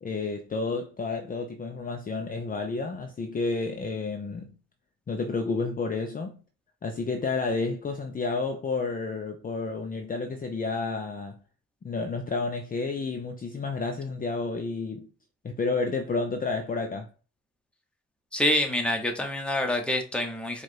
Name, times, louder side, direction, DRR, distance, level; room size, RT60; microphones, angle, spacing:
voice 1, 0.0-4.5 5.1-6.4 6.8-11.4 11.8-15.1 15.4-17.1, left 3 dB, 30° left, 0.6 m, -30 dB
voice 2, 18.3-20.6, left 1 dB, 5° left, 1.1 m, -26 dB
4.7 x 2.5 x 4.5 m
cardioid pair, 90°, 30 cm